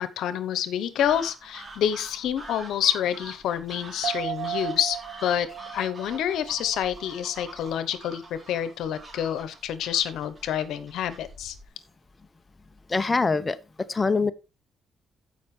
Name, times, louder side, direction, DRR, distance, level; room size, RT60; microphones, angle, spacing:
voice 1, 0.0-5.5 5.7-11.5, left 10 dB, 80° left, 0.9 m, -28 dB
sound 1, 1.0-11.7, right 2 dB, 30° right, 3.3 m, -46 dB
sound 2, 4.0-7.7 8.1-8.2, right 11 dB, 85° right, 0.4 m, -36 dB
voice 2, 12.9-13.6 13.9-14.3, left 4 dB, 25° left, 0.6 m, -23 dB
15.0 x 5.4 x 3.3 m
cardioid pair, 100°, 0 cm